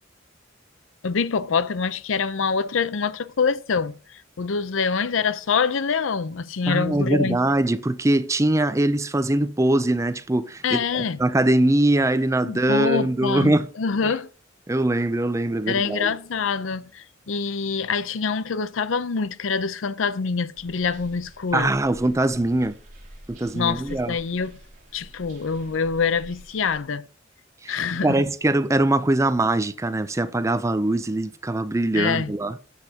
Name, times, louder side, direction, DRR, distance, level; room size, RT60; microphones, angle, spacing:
voice 1, 1.0-7.4 10.6-11.2 12.4-14.3 15.7-21.7 23.5-24.6 24.9-27.0 27.7-28.2 31.9-32.3, left 5 dB, 90° left, 0.6 m, -25 dB
voice 2, 6.7-13.7 14.0-14.1 14.7-16.1 21.5-22.8 23.3-24.2 27.6-27.8 28.0-32.6, right 1 dB, 15° right, 0.4 m, -22 dB
sound 1, 20.6-26.8, right 1 dB, 40° right, 2.8 m, -47 dB
13.0 x 8.3 x 2.8 m
head